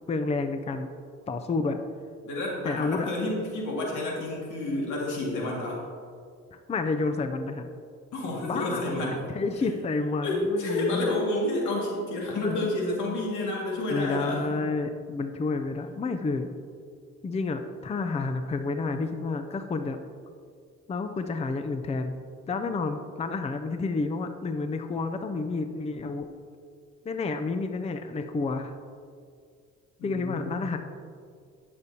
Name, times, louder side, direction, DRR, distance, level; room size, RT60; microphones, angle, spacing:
voice 1, 0.1-0.9 1.3-1.8 2.6-3.1 6.7-7.7 8.4-11.1 12.4-12.6 13.5-16.5 17.2-20.0 20.9-22.2 22.5-26.3 27.0-28.7 30.0-30.8, left 3 dB, 20° left, 7 dB, 0.4 m, -30 dB
voice 2, 2.2-5.8 8.1-9.2 9.6-9.7 10.2-14.5 30.0-30.7, left 1 dB, 85° left, -3 dB, 2.1 m, -30 dB
12.0 x 6.8 x 2.8 m, 2.2 s
cardioid pair, 90°, 30 cm